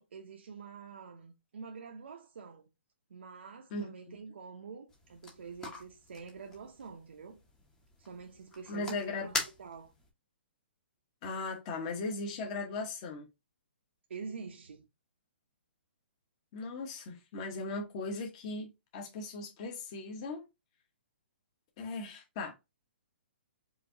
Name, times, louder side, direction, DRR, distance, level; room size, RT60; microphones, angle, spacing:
voice 1, 0.0-2.7 3.1-7.4 8.0-9.3 9.6-9.9 14.1-14.9, right 5 dB, 80° right, 0.7 m, -46 dB
sound 1, 4.9-10.1, left 2 dB, 10° left, 0.8 m, -43 dB
voice 2, 8.7-9.3 11.2-13.2 16.5-20.5 21.8-22.5, left 3 dB, 30° left, 1.1 m, -38 dB
4.9 x 2.7 x 2.6 m
hypercardioid pair, 165°, 6 cm